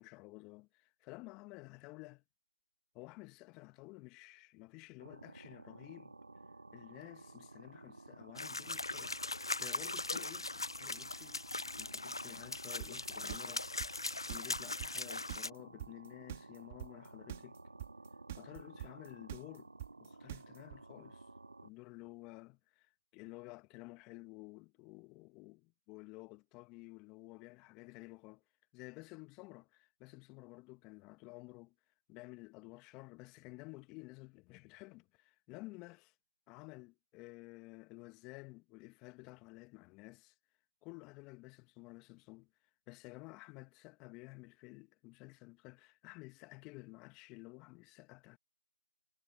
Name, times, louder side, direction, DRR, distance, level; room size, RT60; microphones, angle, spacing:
voice 1, 0.0-2.2 2.9-6.1 6.7-11.5 11.8-13.8 14.3-17.6 18.3-19.7 20.0-21.3 21.6-28.4 28.7-31.7 32.1-36.1 36.5-40.3 40.8-42.5 42.9-48.4, left 25 dB, 10° left, 1.6 m, -53 dB
sound 1, 5.0-21.7, right 2 dB, 65° right, 2.2 m, -54 dB
sound 2, 8.4-15.5, left 2 dB, 70° left, 0.5 m, -40 dB
sound 3, 12.8-20.8, right 13 dB, 20° right, 2.7 m, -45 dB
figure-of-eight pair, 160°, 3 cm